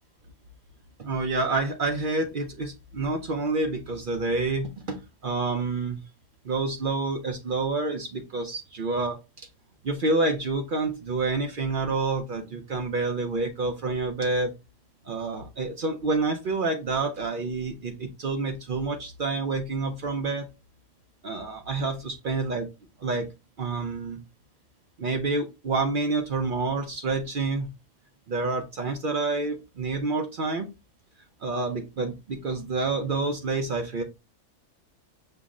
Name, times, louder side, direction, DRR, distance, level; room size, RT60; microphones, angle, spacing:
voice 1, 1.0-6.0 6.4-9.2 9.8-14.5 15.1-20.5 21.2-22.7 23.0-23.3 23.6-24.2 25.0-27.7 28.3-30.7 31.4-34.0, right 3 dB, 55° right, 4 dB, 0.6 m, -28 dB
5.8 x 2.0 x 3.6 m, 0.27 s
omnidirectional pair, 1.4 m